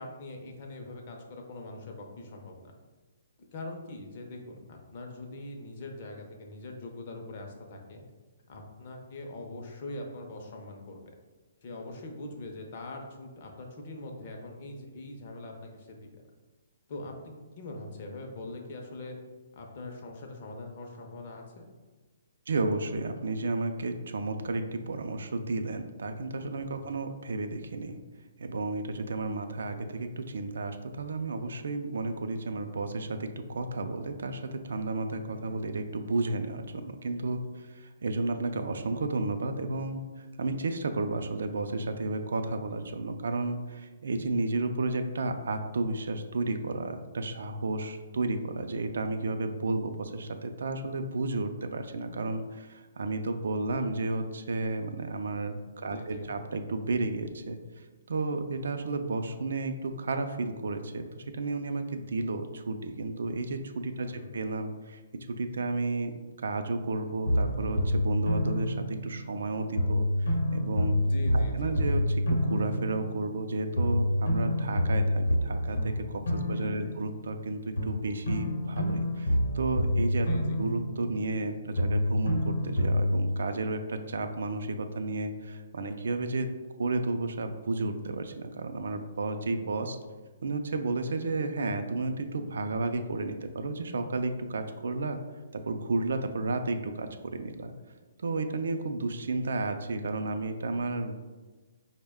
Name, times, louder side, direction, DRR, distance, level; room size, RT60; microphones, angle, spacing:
voice 1, 0.0-2.7 3.5-8.0 8.5-11.0 11.6-16.2 16.9-19.2 19.5-21.6 26.6-26.9 35.3-35.6 55.8-56.3 64.0-64.3 71.0-71.8 76.5-77.0 80.3-80.6, left 2 dB, 35° left, 2 dB, 0.5 m, -42 dB
voice 2, 22.5-28.0 28.4-57.6 58.1-65.0 65.3-66.1 66.4-71.0 71.3-80.3 80.6-86.5 86.8-90.0 90.4-95.2 95.5-97.7 98.2-101.1, right 2 dB, 70° right, 7 dB, 0.3 m, -32 dB
sound 1, 67.3-69.4 69.8-73.5 73.8-77.4 77.8-81.5 81.8-83.3, left 1 dB, 75° left, 0.8 m, -28 dB
4.3 x 2.1 x 3.4 m, 1.3 s
hypercardioid pair, 175°, 0 cm